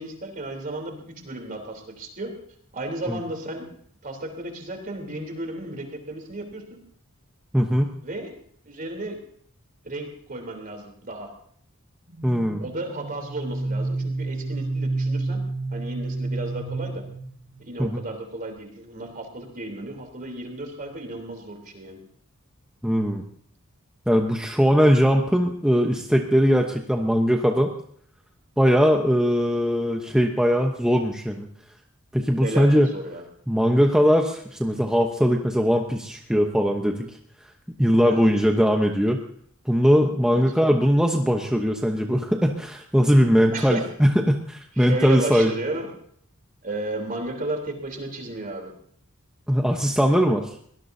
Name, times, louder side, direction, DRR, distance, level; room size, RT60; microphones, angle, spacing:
voice 1, 0.0-2.3 2.7-3.7 4.0-6.8 8.0-8.3 8.6-9.2 9.8-11.3 12.6-15.4 15.7-17.0 17.7-22.0 32.4-33.2 38.0-38.2 40.3-40.4 43.5-43.8 44.8-45.9 46.6-48.7, right 2 dB, 40° right, 3 dB, 3.5 m, -33 dB
voice 2, 7.5-7.9 12.2-12.6 17.8-18.0 22.8-23.2 24.1-27.7 28.6-31.5 32.1-32.9 33.5-37.1 37.8-39.2 39.7-45.5 49.5-50.5, equal, 5° right, 2 dB, 1.0 m, -20 dB
sound 1, 12.1-17.7, right 2 dB, 65° right, 5.3 m, -30 dB
23.0 x 18.5 x 2.8 m, 0.63 s
head